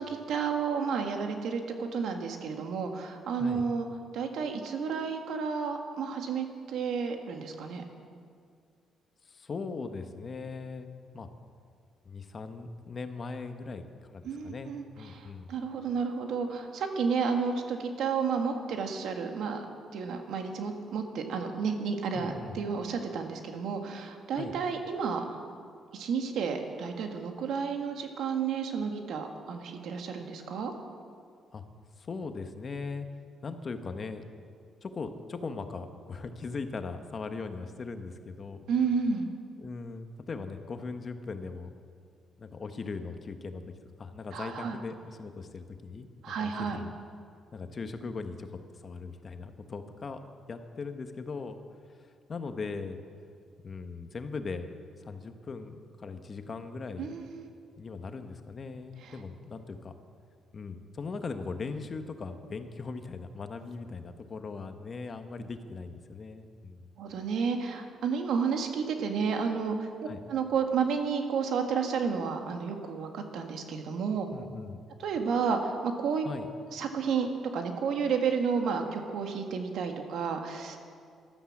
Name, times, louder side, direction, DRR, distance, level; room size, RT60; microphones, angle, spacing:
voice 1, 0.0-3.9 4.1-7.8 14.3-19.7 19.9-25.4 25.9-30.7 38.7-39.4 44.3-44.8 46.2-46.8 57.0-57.5 59.0-59.2 67.0-69.9 70.3-74.3 75.0-76.3 76.7-77.3 77.5-80.8, right 5 dB, 75° right, 4 dB, 1.8 m, -31 dB
voice 2, 9.3-11.3 12.0-15.5 22.1-22.6 24.4-24.5 31.5-31.6 32.0-33.1 33.4-34.3 34.8-38.7 39.6-41.7 42.4-43.6 44.0-46.9 47.5-50.2 50.5-51.6 52.0-53.0 53.6-54.7 55.0-57.1 57.8-60.0 60.5-66.9 70.1-70.2 74.3-74.8 76.2-76.5, left 4 dB, 40° left, 7 dB, 1.2 m, -39 dB
14.0 x 12.5 x 7.3 m, 2.2 s
cardioid pair, 90°, 0 cm